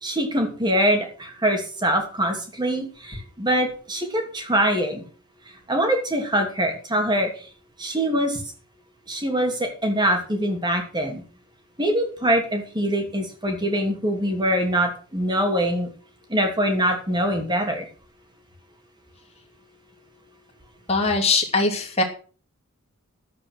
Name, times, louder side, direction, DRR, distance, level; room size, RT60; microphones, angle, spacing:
voice 1, 0.0-5.0 5.7-7.3 7.8-8.4 9.1-11.2 11.8-15.9 16.3-17.8, right 1 dB, 20° right, 3 dB, 2.8 m, -23 dB
voice 2, 20.9-22.0, left 3 dB, 30° left, 1 dB, 2.7 m, -21 dB
12.0 x 8.6 x 6.5 m, 0.40 s
head